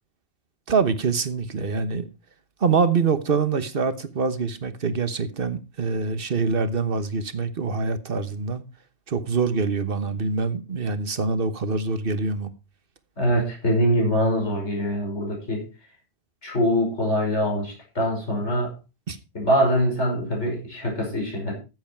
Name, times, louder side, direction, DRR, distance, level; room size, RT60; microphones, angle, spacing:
voice 1, 0.7-2.1 2.6-8.6 9.1-12.5 19.1-19.2, right 4 dB, 55° right, 1.3 m, -25 dB
voice 2, 13.2-15.7 16.4-18.7 19.3-21.5, equal, 85° left, 5.7 m, -23 dB
14.0 x 8.1 x 4.5 m
omnidirectional pair, 1.1 m